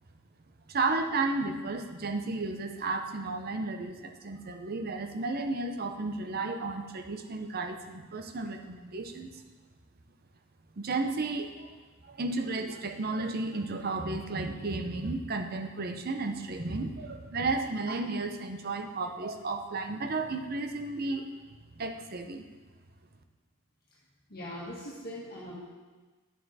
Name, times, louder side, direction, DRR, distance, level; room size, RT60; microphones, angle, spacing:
voice 1, 0.7-9.4 10.8-11.7 12.0-21.3 21.8-22.4, right 3 dB, 45° right, 6 dB, 0.7 m, -33 dB
voice 2, 24.3-25.6, equal, 45° left, -7 dB, 1.8 m, -41 dB
9.9 x 7.2 x 4.1 m, 1.3 s
head